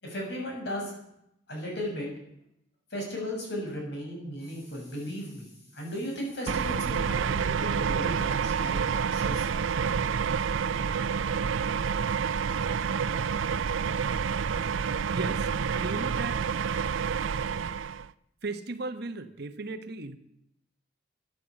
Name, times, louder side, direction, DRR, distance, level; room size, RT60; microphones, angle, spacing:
voice 1, 0.0-0.9 1.5-2.1 2.9-9.5, equal, 60° left, -1 dB, 6.7 m, -36 dB
sound 1, 6.5-18.1, right 6 dB, 80° right, 0.5 m, -28 dB
voice 2, 15.1-16.5 18.4-20.2, right 3 dB, 55° right, 10 dB, 1.1 m, -36 dB
12.5 x 10.5 x 8.3 m, 0.79 s
head